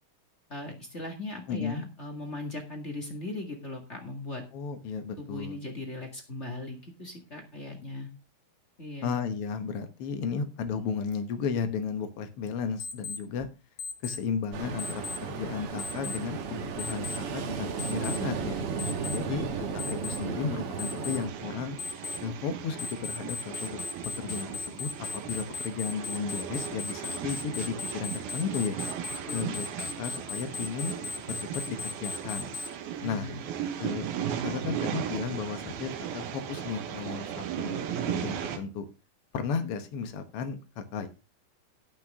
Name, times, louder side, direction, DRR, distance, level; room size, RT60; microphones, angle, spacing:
voice 1, 0.5-4.4 5.2-8.1 8.8-9.1 19.2-19.5 29.3-30.2 33.0-33.4, left 2 dB, 30° left, 3 dB, 1.3 m, -39 dB
voice 2, 1.5-1.9 4.5-5.6 9.0-13.5 14.0-15.0 15.3-19.5 19.9-21.8 22.2-23.8 24.2-24.9 25.2-28.8 29.3-30.9 31.7-32.5 33.0-33.3 33.8-34.1 34.4-37.8 38.1-38.8 39.3-41.1, left 6 dB, 85° left, 8 dB, 1.2 m, -34 dB
Alarm, 12.8-13.2 13.8-14.2 14.8-15.2 15.8-16.2 16.8-17.2 17.8-18.2 18.8-19.2 19.8-20.2 20.8-21.2 21.8-22.2 22.8-32.7, left 5 dB, 60° left, 1.6 m, -36 dB
Ocean, 14.5-21.3, right 5 dB, 65° right, 1.4 m, -34 dB
sound 1, 21.3-38.6, right 9 dB, 80° right, 3.2 m, -37 dB
18.0 x 6.2 x 3.6 m, 0.28 s
omnidirectional pair, 4.3 m